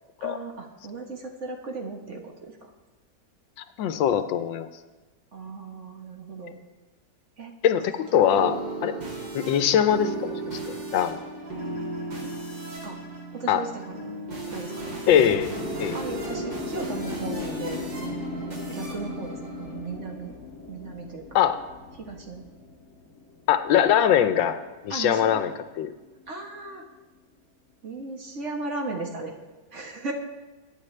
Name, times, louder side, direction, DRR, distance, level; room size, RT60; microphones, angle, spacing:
voice 1, 0.2-2.7 5.3-6.6 7.4-7.5 8.1-8.3 12.2-12.3 12.8-13.0 13.3-13.9 14.5-15.0 15.9-17.9 18.7-20.3 20.7-21.2 22.0-22.4 24.9-25.4 26.3-26.8 27.8-29.4 29.7-30.1, right 3 dB, 40° right, 1 dB, 1.6 m, -36 dB
voice 2, 3.8-4.7 7.6-8.9 9.3-11.2 13.5-13.6 15.1-15.5 15.8-15.9 21.3-21.6 23.5-24.6 24.8-25.5 25.8-25.9, left 9 dB, 85° left, 10 dB, 1.5 m, -22 dB
sound 1, 7.8-20.3, right 3 dB, 70° right, 3.5 m, -36 dB
sound 2, 15.1-25.2 25.5-27.1, left 5 dB, 45° left, 2.7 m, -38 dB
22.5 x 9.9 x 3.3 m, 1.2 s
omnidirectional pair, 2.0 m